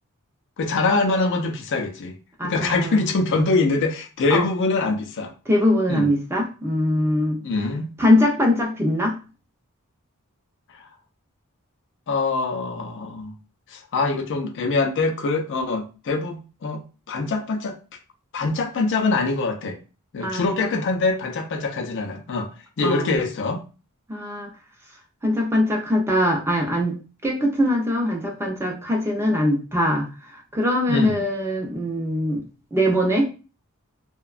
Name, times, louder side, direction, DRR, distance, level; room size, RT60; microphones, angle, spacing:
voice 1, 0.6-2.2 2.4-5.3 5.9-6.1 7.4-7.9 12.1-13.4 13.7-17.8 18.3-19.8 20.1-22.5 22.8-23.6 30.9-31.2, left 3 dB, 55° left, 0.4 m, -24 dB
voice 2, 2.4-3.0 4.3-4.4 5.5-7.4 8.0-9.2 20.2-20.8 22.8-23.2 24.1-24.5 25.2-27.0 27.2-32.4 32.7-33.3, left 1 dB, 10° right, 0.5 m, -22 dB
2.7 x 2.1 x 2.4 m
head